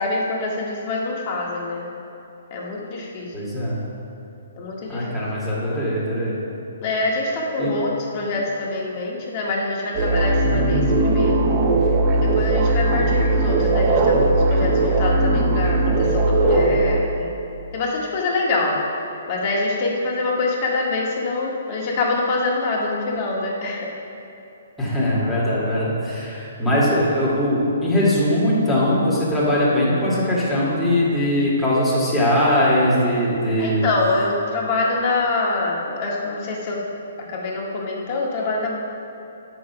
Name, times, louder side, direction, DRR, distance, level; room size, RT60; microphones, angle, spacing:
voice 1, 0.0-1.8 2.5-3.3 4.6-5.1 6.8-11.4 12.1-17.3 17.7-18.8 19.3-23.9 33.6-36.8 37.3-38.7, left 3 dB, 40° left, -2 dB, 1.8 m, -25 dB
voice 2, 3.3-3.8 4.9-6.4 7.6-7.7 24.8-33.9, left 1 dB, ahead, -10 dB, 2.2 m, -20 dB
sound 1, 9.9-17.0, right 2 dB, 30° right, 1.1 m, -18 dB
8.8 x 6.2 x 6.0 m, 2.7 s
hypercardioid pair, 150°, 0 cm